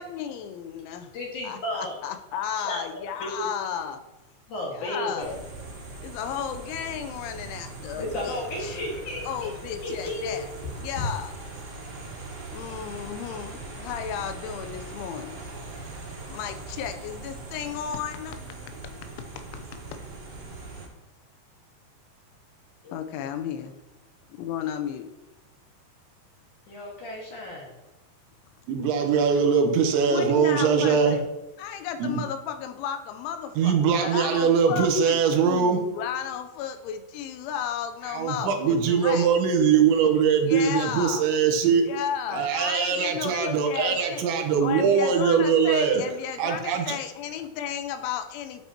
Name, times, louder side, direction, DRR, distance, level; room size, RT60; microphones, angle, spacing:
voice 1, 0.0-1.1 1.4-4.0 4.7-5.4 6.0-8.8 9.2-11.3 12.5-15.4 16.3-18.4 18.8-18.9 19.4-19.6 19.9-20.0 22.9-23.7 24.3-25.1 30.1-31.2 31.6-39.3 40.4-41.3 41.9-44.2 44.6-48.7, left 8 dB, 90° left, 8 dB, 3.2 m, -34 dB
voice 2, 1.1-2.0 2.6-3.5 4.5-5.3 8.0-9.2 9.8-10.4 10.8-10.9 22.8-22.9 26.7-27.7, left 1 dB, 55° left, -3 dB, 2.6 m, -33 dB
sound 1, 5.2-20.9, right 3 dB, 40° right, 2.8 m, -40 dB
voice 3, 28.7-31.2 32.0-32.2 33.6-35.8 38.1-41.8 42.3-46.0 46.4-47.0, right 6 dB, 80° right, 4 dB, 3.3 m, -22 dB
12.5 x 8.0 x 2.9 m, 1.0 s
omnidirectional pair, 5.3 m